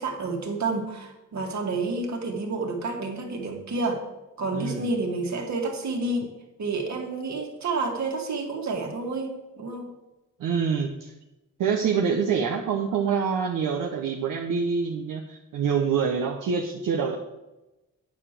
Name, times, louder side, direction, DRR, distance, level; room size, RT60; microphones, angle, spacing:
voice 1, 0.0-4.0 4.4-6.3 6.6-9.9, right 3 dB, 55° right, 1 dB, 2.2 m, -29 dB
voice 2, 4.5-4.9 10.4-11.1 11.6-17.1, right 6 dB, 75° right, 0 dB, 1.0 m, -26 dB
9.2 x 4.9 x 7.6 m, 1.0 s
cardioid pair, 85°, 32 cm